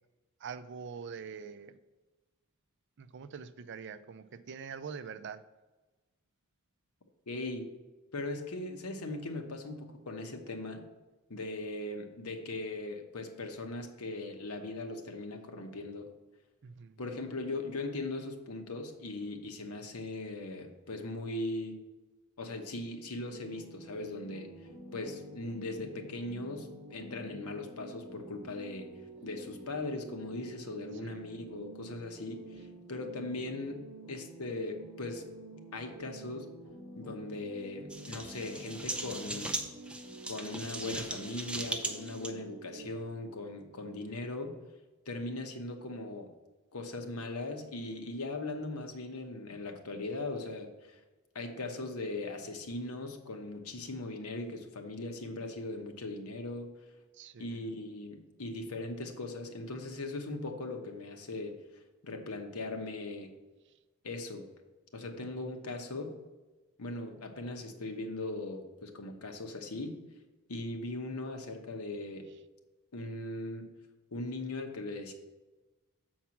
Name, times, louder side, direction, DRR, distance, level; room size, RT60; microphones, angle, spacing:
voice 1, 0.4-1.8 3.0-5.4 16.6-17.0 31.0-31.3 57.1-57.6 65.2-65.3, right 6 dB, 55° right, 13 dB, 0.4 m, -44 dB
voice 2, 7.3-7.7 8.1-10.9 11.3-16.1 17.0-21.8 22.4-24.5 24.9-28.9 29.2-33.8 34.1-35.2 35.7-36.5 37.0-39.6 40.3-44.5 45.1-46.3 46.7-51.0 51.3-56.7 57.4-61.6 62.0-63.3 64.0-64.4 64.9-66.1 66.8-70.0 70.5-72.3 72.9-73.7 74.1-75.1, left 2 dB, 75° left, 5 dB, 1.0 m, -39 dB
sound 1, 23.3-42.9, right 2 dB, 40° right, 1.6 m, -49 dB
sound 2, 37.9-42.3, right 2 dB, 5° right, 0.6 m, -39 dB
7.3 x 4.6 x 5.8 m, 1.2 s
head